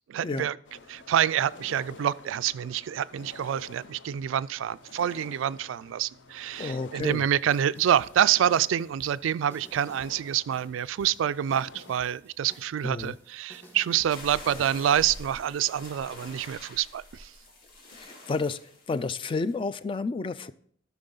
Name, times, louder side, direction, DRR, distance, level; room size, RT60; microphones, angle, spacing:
voice 1, 0.1-0.6 0.9-17.3, right 10 dB, 80° right, 0.3 m, -27 dB
sound 1, 0.6-12.0, left 3 dB, 65° left, 0.7 m, -50 dB
voice 2, 6.6-7.2 12.8-13.2 17.9-18.6 18.9-20.5, left 3 dB, 25° left, 0.3 m, -31 dB
sound 2, 7.0-15.0, equal, 10° left, 1.4 m, -54 dB
sound 3, 14.1-19.5, left 1 dB, 50° left, 2.0 m, -46 dB
12.5 x 6.0 x 3.9 m
head